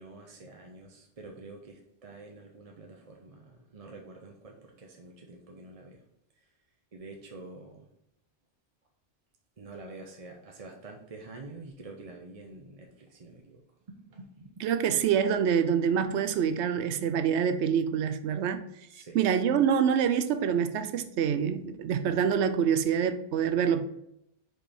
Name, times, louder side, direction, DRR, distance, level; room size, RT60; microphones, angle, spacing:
voice 1, 0.0-6.1 6.4-6.5 6.9-7.9 9.6-13.6 13.9-14.7 18.9-19.2, right 3 dB, 35° right, 0.7 m, -47 dB
voice 2, 14.6-18.6 19.1-23.8, right 8 dB, 75° right, 0.9 m, -26 dB
5.2 x 4.7 x 4.4 m
omnidirectional pair, 1.2 m